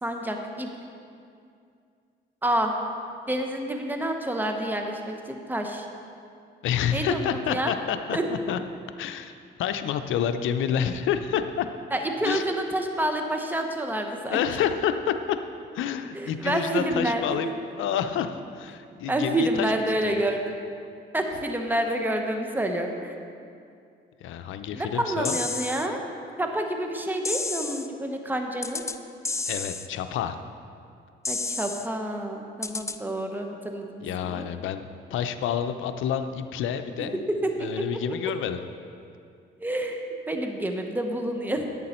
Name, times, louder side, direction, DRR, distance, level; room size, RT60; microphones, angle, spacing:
voice 1, 0.0-0.7 2.4-2.7 3.3-5.9 6.9-7.7 8.1-8.2 11.9-14.4 16.1-17.5 19.1-20.5 21.1-23.1 24.7-26.0 26.4-28.8 31.3-34.5 37.0-37.8 39.6-41.7, right 1 dB, 10° right, 3 dB, 1.0 m, -28 dB
voice 2, 6.6-8.6 9.0-9.3 9.6-11.7 12.2-12.4 14.3-15.4 15.7-17.5 17.8-19.7 20.0-20.2 24.2-25.4 29.5-30.4 34.0-37.2 37.6-38.6, left 9 dB, 80° left, 9 dB, 0.6 m, -28 dB
sound 1, 25.2-25.9 27.2-27.9 28.6-29.0 29.2-29.9 31.2-31.9 32.6-33.0, left 3 dB, 15° left, 0.4 m, -31 dB
11.0 x 8.5 x 4.4 m, 2.4 s
cardioid pair, 90°, 20 cm